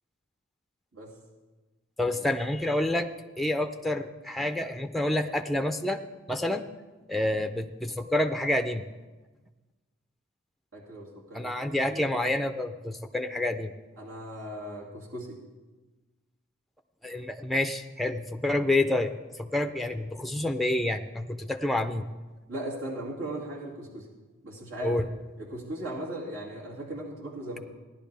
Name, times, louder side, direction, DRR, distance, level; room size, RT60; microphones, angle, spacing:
voice 1, 2.0-3.1 3.4-6.0 6.3-6.7 7.1-8.9 11.3-13.7 17.0-19.1 19.4-22.1 24.8-25.0, left 1 dB, ahead, 6 dB, 0.4 m, -28 dB
voice 2, 10.7-12.2 14.0-15.4 22.5-24.1 24.4-25.0 25.4-27.6, right 1 dB, 85° right, -4 dB, 2.6 m, -38 dB
17.5 x 11.0 x 3.4 m, 1.2 s
head